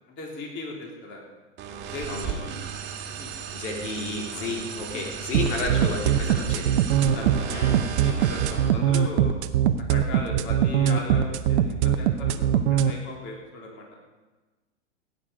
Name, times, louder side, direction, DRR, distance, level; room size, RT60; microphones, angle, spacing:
voice 1, 0.2-1.2 1.8-2.6 3.2-3.3 4.3-4.5 4.9-5.0 5.4-5.6 6.2-6.5 7.1-9.3 9.8-14.0, left 2 dB, 30° left, -1 dB, 3.3 m, -38 dB
sound 1, 1.6-8.7, right 7 dB, 30° right, 1.8 m, -35 dB
voice 2, 3.5-6.8 7.5-7.8, left 3 dB, 85° left, 0 dB, 3.5 m, -32 dB
sound 2, 5.3-12.9, right 10 dB, 65° right, 0.9 m, -21 dB
17.0 x 9.6 x 5.1 m, 1.2 s
hypercardioid pair, 135°, 36 cm